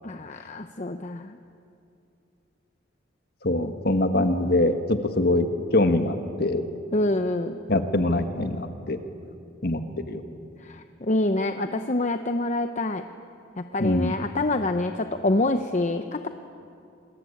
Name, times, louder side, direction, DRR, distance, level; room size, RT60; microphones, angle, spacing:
voice 1, 0.0-1.4 6.9-7.6 10.6-13.0 13.6-16.3, left 2 dB, 35° left, 7 dB, 0.8 m, -26 dB
voice 2, 3.4-5.5 5.7-6.6 7.7-9.0 9.6-10.2 13.8-14.1, left 1 dB, 50° left, 7 dB, 1.7 m, -23 dB
27.5 x 21.5 x 8.6 m, 2.6 s
head